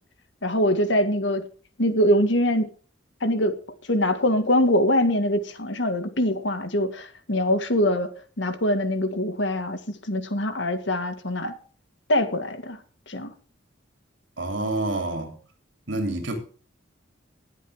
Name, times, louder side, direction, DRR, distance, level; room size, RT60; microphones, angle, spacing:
voice 1, 0.4-1.4 1.8-2.7 3.2-3.6 3.9-8.1 8.4-9.8 10.1-11.5 12.1-12.8 13.1-13.3, left 1 dB, 65° left, 2.0 m, -23 dB
voice 2, 14.4-15.4 15.9-16.3, right 2 dB, 65° right, 3.5 m, -27 dB
20.5 x 8.3 x 3.7 m
head